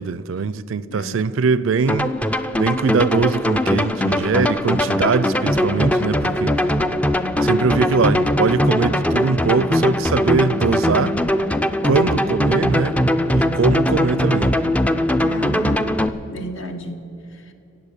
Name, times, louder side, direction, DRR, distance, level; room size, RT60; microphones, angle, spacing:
voice 1, 0.0-2.2 2.6-6.6 7.4-11.2 11.8-13.0 13.3-14.5, right 5 dB, 65° right, 0.4 m, -21 dB
voice 2, 0.9-1.2 15.2-16.0 16.3-17.5, right 1 dB, 65° left, 1.4 m, -33 dB
sound 1, 1.9-16.1, left 1 dB, 5° left, 0.4 m, -20 dB
15.0 x 8.4 x 8.4 m
head